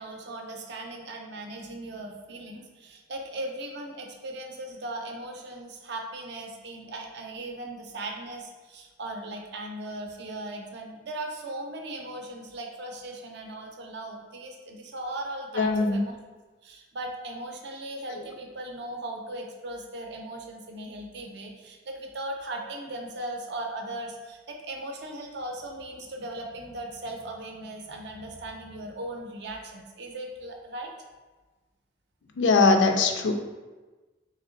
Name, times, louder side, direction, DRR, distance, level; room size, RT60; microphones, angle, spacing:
voice 1, 0.0-16.2 16.6-30.9, right 1 dB, 60° right, 2 dB, 0.5 m, -38 dB
voice 2, 15.6-16.0 18.2-18.3 32.4-33.3, left 3 dB, 65° left, 5 dB, 0.4 m, -21 dB
3.2 x 2.8 x 3.8 m, 1.2 s
head